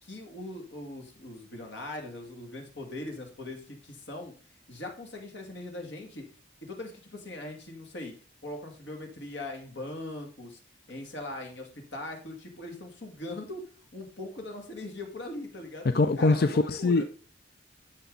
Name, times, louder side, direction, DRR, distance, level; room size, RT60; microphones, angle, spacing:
voice 1, 0.0-4.3 4.7-6.3 6.6-8.1 8.4-10.6 10.9-13.6 13.9-17.0, left 2 dB, 65° left, 2.2 m, -40 dB
voice 2, 15.9-17.0, left 3 dB, 50° left, 0.4 m, -23 dB
11.5 x 7.0 x 3.9 m
head